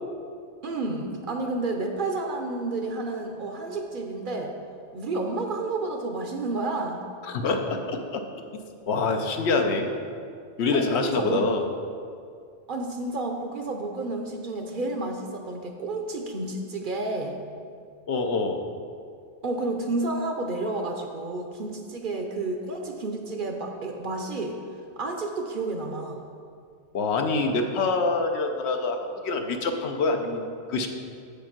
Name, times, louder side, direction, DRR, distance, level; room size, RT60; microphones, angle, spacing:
voice 1, 0.6-4.5 4.9-7.0 10.7-11.7 12.7-17.4 19.4-24.6 25.0-26.2, right 2 dB, 55° right, 3 dB, 0.8 m, -30 dB
voice 2, 7.3-8.2 8.9-9.9 10.6-11.6 18.1-18.7 26.9-29.0 29.2-30.9, left 3 dB, 70° left, 4 dB, 1.0 m, -25 dB
7.4 x 5.2 x 5.8 m, 2.3 s
omnidirectional pair, 1.2 m